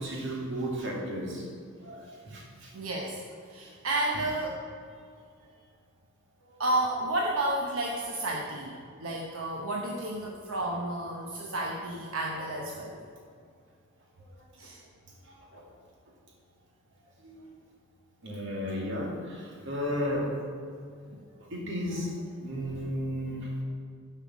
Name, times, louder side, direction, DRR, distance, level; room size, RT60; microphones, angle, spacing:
voice 1, 0.0-1.5 1.8-2.7 6.5-6.6 15.2-15.6 17.2-17.4 18.2-20.3 21.5-23.5, equal, 65° right, -3 dB, 2.4 m, -34 dB
voice 2, 2.7-3.2 3.5-4.6 6.6-8.7 9.0-13.0 14.6-14.8 21.1-21.2, right 1 dB, 90° right, -1 dB, 1.0 m, -31 dB
11.0 x 5.6 x 6.1 m, 2.2 s
head